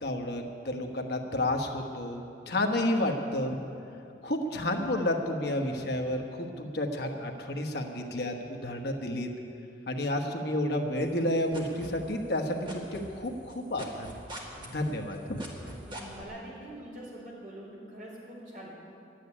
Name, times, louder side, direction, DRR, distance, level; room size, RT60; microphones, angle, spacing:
voice 1, 0.0-3.6 4.2-9.3 9.9-14.1 14.7-15.4, left 1 dB, 60° left, 3 dB, 1.2 m, -31 dB
sound 1, 11.0-12.4 12.7-16.2, right 1 dB, 25° right, 1.9 m, -42 dB
voice 2, 15.8-18.7, right 1 dB, 45° right, -4 dB, 4.3 m, -44 dB
12.0 x 9.2 x 9.8 m, 2.7 s
head